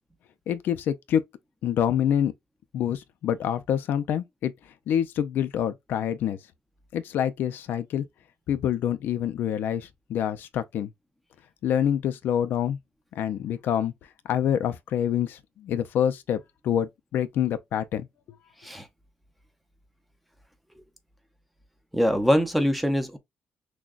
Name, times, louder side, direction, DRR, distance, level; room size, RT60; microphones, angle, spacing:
voice 1, 0.5-1.2 1.6-2.3 2.7-4.5 4.9-6.4 6.9-8.0 8.5-10.9 11.6-12.8 13.2-13.9 14.2-18.1, left 9 dB, 60° left, 0.4 m, -26 dB
voice 2, 21.9-23.2, equal, ahead, 0.6 m, -23 dB
6.1 x 2.2 x 2.4 m
cardioid pair, 180°, 4 cm